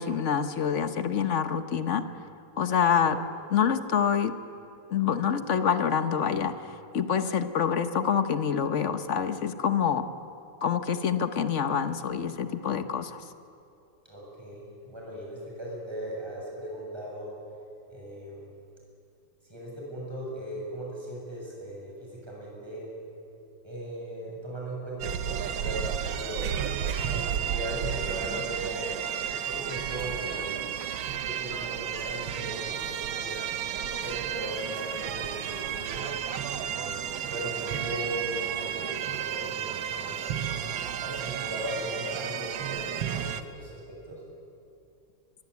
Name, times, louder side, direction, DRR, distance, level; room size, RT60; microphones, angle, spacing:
voice 1, 0.0-2.1 2.6-3.2 3.5-4.3 4.9-10.1 10.6-13.2, left 7 dB, 45° left, 10 dB, 1.1 m, -26 dB
voice 2, 14.0-17.3 17.9-18.5 19.5-22.9 23.6-26.5 27.0-28.9 29.4-30.6 31.2-33.5 33.9-36.2 36.7-38.3 38.5-40.5 41.0-42.8 43.0-43.8 44.1-44.2, right 1 dB, 10° right, -4 dB, 7.2 m, -38 dB
sound 1, 25.0-43.4, right 9 dB, 85° right, 1.8 m, -32 dB
23.5 x 22.5 x 8.4 m, 2.7 s
omnidirectional pair, 2.1 m